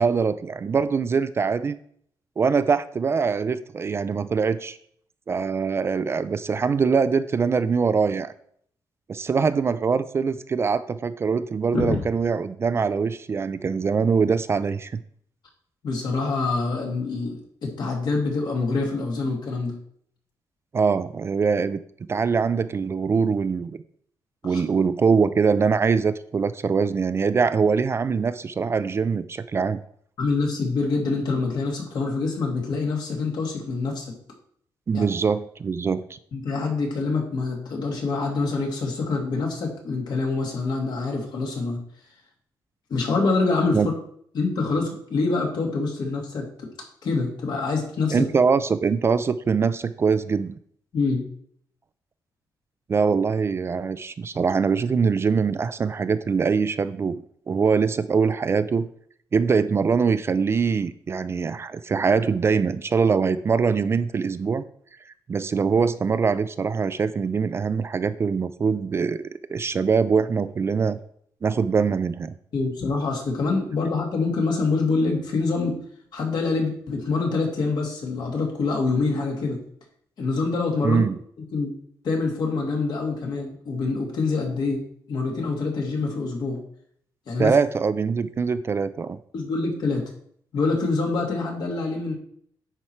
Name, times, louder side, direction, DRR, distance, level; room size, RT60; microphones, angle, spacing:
voice 1, 0.0-1.8 2.4-4.8 5.3-8.3 9.1-15.0 20.7-21.8 22.1-23.7 24.4-29.8 34.9-36.2 43.7-43.9 48.1-50.5 52.9-58.9 59.3-64.6 65.3-69.2 69.5-71.0 71.4-72.3 80.8-81.2 87.4-89.2, right 5 dB, 30° right, 13 dB, 0.3 m, -23 dB
voice 2, 11.7-12.0 15.8-19.7 24.5-24.6 30.2-34.0 34.9-35.0 36.3-41.8 42.9-43.8 44.3-46.7 47.0-48.3 50.9-51.2 72.5-75.8 76.1-79.6 80.2-81.0 81.5-81.8 82.0-84.8 85.1-86.6 87.3-87.5 89.3-90.0 90.5-92.1, left 3 dB, 60° left, 0 dB, 2.1 m, -25 dB
9.9 x 4.6 x 4.3 m, 0.65 s
wide cardioid pair, 145°, 8 cm